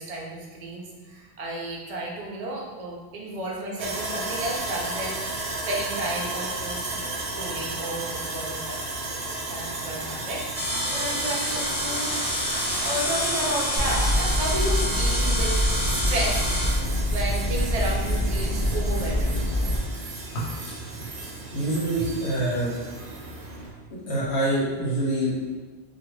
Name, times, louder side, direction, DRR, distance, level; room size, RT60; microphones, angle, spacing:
voice 1, 0.0-9.2 9.5-10.4 10.9-12.2 12.8-16.4 17.1-19.4, right 1 dB, 45° right, -2 dB, 0.5 m, -32 dB
Sawing, 3.8-23.7, right 2 dB, 85° right, 0.9 m, -34 dB
sound 1, 10.5-16.7, equal, 20° left, 1.0 m, -28 dB
sound 2, 13.8-19.8, left 1 dB, 45° left, 0.4 m, -25 dB
voice 2, 20.3-20.8 21.5-22.7 24.1-25.5, right 1 dB, 85° left, -6 dB, 1.2 m, -26 dB
2.8 x 2.4 x 3.1 m, 1.3 s
omnidirectional pair, 1.1 m